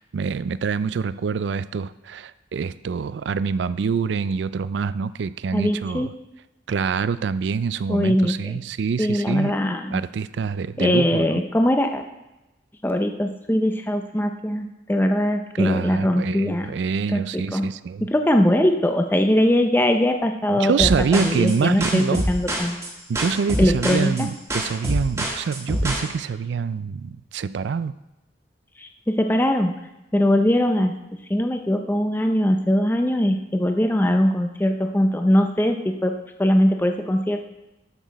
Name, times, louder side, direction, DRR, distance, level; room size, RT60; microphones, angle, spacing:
voice 1, 0.0-6.1 6.7-9.5 9.9-11.4 15.5-18.1 20.5-22.2 23.1-28.0, right 5 dB, 70° right, 15 dB, 0.3 m, -25 dB
voice 2, 5.5-6.1 7.9-8.6 9.0-10.0 10.8-12.0 12.8-16.7 17.1-17.7 18.0-22.8 23.6-24.3 28.8-29.7 30.1-30.9 31.3-37.5, left 1 dB, 10° left, 5 dB, 0.5 m, -21 dB
sound 1, 20.8-26.1, right 1 dB, 15° right, 1.5 m, -26 dB
12.5 x 6.0 x 4.0 m, 0.99 s
head